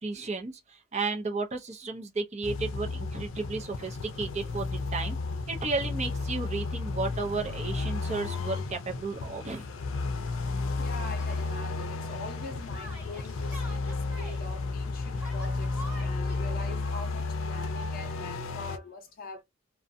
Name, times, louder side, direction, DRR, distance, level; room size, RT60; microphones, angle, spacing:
voice 1, 0.0-5.2 5.5-9.6, right 3 dB, 35° right, 0.6 m, -33 dB
sound 1, 2.4-18.8, left 3 dB, 85° left, 0.4 m, -33 dB
voice 2, 10.8-19.4, left 3 dB, 50° left, 0.7 m, -43 dB
Yell, 11.2-11.5 12.7-14.4 15.1-16.4, equal, 5° right, 1.1 m, -46 dB
2.5 x 2.2 x 2.6 m
head